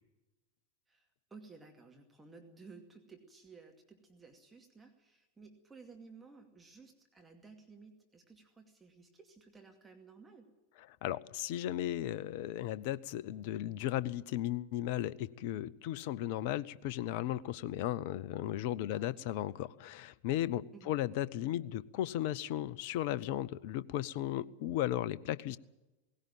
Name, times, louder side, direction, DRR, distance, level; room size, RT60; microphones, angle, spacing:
voice 1, 0.9-10.5 18.9-19.4 20.7-21.0, right 4 dB, 10° right, 2 dB, 2.5 m, -56 dB
voice 2, 11.0-25.6, left 13 dB, 50° left, 20 dB, 0.7 m, -35 dB
19.0 x 16.5 x 9.1 m, 1.0 s
figure-of-eight pair, 90°, 0 cm